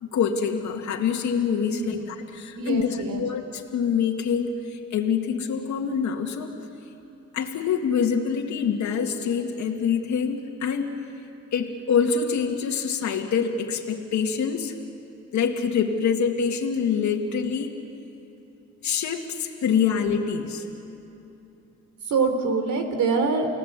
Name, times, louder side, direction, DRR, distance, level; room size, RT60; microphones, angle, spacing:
voice 1, 0.0-6.5 7.3-10.9 11.5-14.7 15.3-17.8 18.8-20.6, left 6 dB, 70° left, 2 dB, 2.1 m, -25 dB
voice 2, 1.6-2.0 2.5-3.2 22.1-23.5, right 4 dB, 70° right, 6 dB, 3.7 m, -25 dB
29.5 x 18.0 x 8.3 m, 2.8 s
cardioid pair, 90°, 30 cm